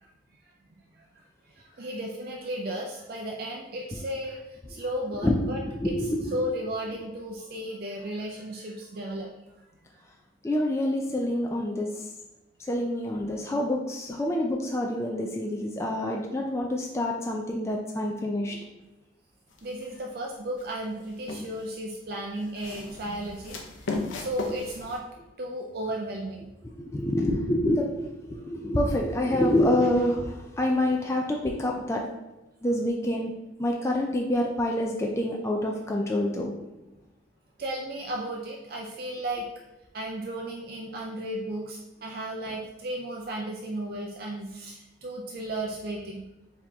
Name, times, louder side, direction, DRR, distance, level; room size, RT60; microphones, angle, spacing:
voice 1, 1.7-9.3 19.6-25.0 25.4-26.5 37.6-39.5 39.9-46.3, right 1 dB, 50° right, 0 dB, 0.4 m, -34 dB
voice 2, 5.2-6.4 10.4-11.9 12.7-18.6 26.8-32.0 32.6-33.3 33.6-36.5, left 1 dB, 15° left, 0 dB, 0.3 m, -27 dB
sound 1, 19.5-20.0 20.6-21.7 22.4-25.0, left 3 dB, 80° left, 0.7 m, -36 dB
4.8 x 2.8 x 3.5 m, 1.0 s
head